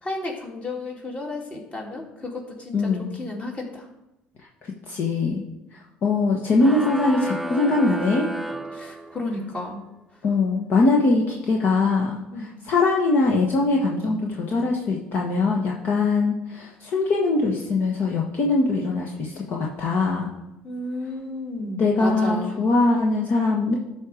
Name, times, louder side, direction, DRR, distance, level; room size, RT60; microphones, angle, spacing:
voice 1, 0.0-3.9 8.7-9.8 12.3-12.5 20.6-22.6, left 2 dB, 30° left, -1 dB, 2.8 m, -32 dB
voice 2, 2.7-3.1 4.6-5.4 6.0-8.3 10.2-20.3 21.8-23.8, left 3 dB, 55° left, -1 dB, 1.4 m, -22 dB
sound 1, 6.6-9.5, right 2 dB, 5° right, 0.6 m, -32 dB
12.5 x 4.5 x 5.1 m, 0.93 s
hypercardioid pair, 70°, 4 cm